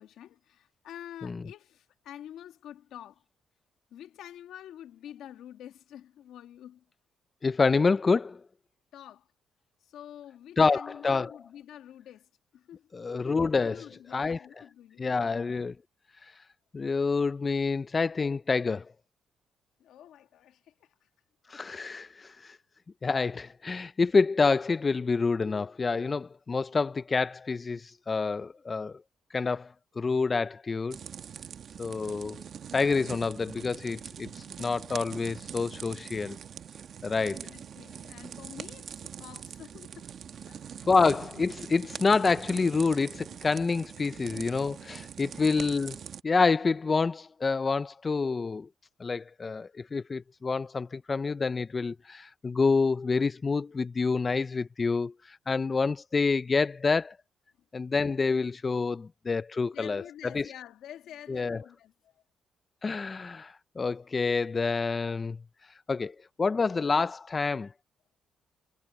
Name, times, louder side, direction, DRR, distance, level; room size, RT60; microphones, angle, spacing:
voice 1, 0.0-3.2 3.9-6.8 8.9-9.3 9.8-12.9 13.6-15.3 19.8-20.9 37.3-40.1 40.4-40.7 45.2-45.7 59.7-62.2, left 11 dB, 80° left, 1.6 m, -48 dB
voice 2, 7.4-8.4 10.6-11.4 12.9-13.8 14.1-14.4 15.0-15.7 16.2-16.3 16.7-18.9 21.5-22.6 23.0-29.0 29.3-31.0 31.8-32.4 32.7-36.4 37.0-37.5 40.9-46.0 46.2-48.7 49.0-57.2 57.7-60.5 61.3-61.6 62.8-65.4 65.9-67.7, left 4 dB, 30° left, 0.4 m, -27 dB
sound 1, 30.9-46.2, right 8 dB, 60° right, 1.2 m, -43 dB
cardioid pair, 90°, 0 cm